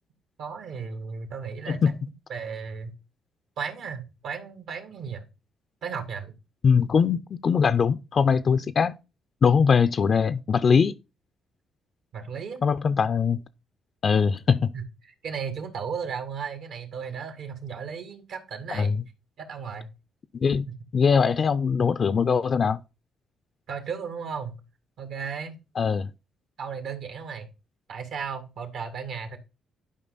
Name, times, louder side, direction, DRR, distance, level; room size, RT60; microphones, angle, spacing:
voice 1, 0.4-1.8 2.3-2.9 3.6-5.3 5.8-6.3 12.1-12.6 14.7-18.9 19.4-19.9 20.7-20.8 23.7-24.6 25.0-25.6 26.6-27.5 27.9-29.4, right 6 dB, 75° right, 2.1 m, -35 dB
voice 2, 6.6-8.9 9.4-10.9 12.6-13.4 14.0-14.7 18.7-19.0 20.4-20.7 20.9-22.8 25.8-26.1, left 6 dB, 50° left, 0.5 m, -21 dB
11.0 x 5.2 x 4.0 m
cardioid pair, 90°, 0 cm